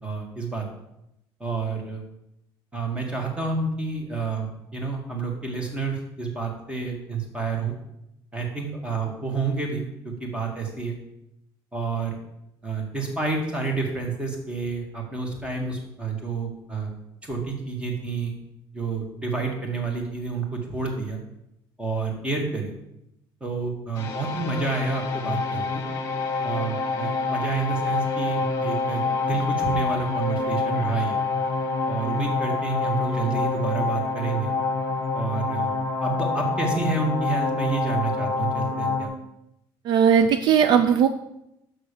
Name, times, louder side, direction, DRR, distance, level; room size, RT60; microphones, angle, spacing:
voice 1, 0.0-0.6 1.4-2.0 2.7-7.8 8.3-11.0 11.7-12.2 12.6-16.9 17.2-18.3 18.7-21.2 21.8-22.7 23.4-25.8 26.4-31.2 31.9-34.5 35.1-35.7 36.0-39.1, right 4 dB, 10° right, 2 dB, 1.6 m, -29 dB
sound 1, 24.0-39.0, left 4 dB, 30° left, 1.3 m, -27 dB
voice 2, 39.8-41.1, right 7 dB, 55° right, 9 dB, 0.5 m, -18 dB
6.3 x 6.3 x 6.7 m, 0.83 s
cardioid pair, 165°, 9 cm